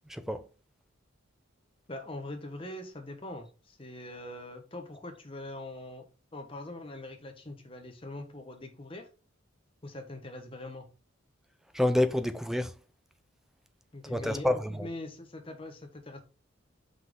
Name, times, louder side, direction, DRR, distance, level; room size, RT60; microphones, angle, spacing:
voice 1, 0.1-0.4 11.7-12.7 14.0-14.9, left 1 dB, ahead, 0.4 m, -28 dB
voice 2, 1.9-6.0 6.3-9.1 9.8-10.9 13.9-16.2, left 1 dB, 25° left, 1.2 m, -42 dB
5.7 x 5.7 x 3.7 m
head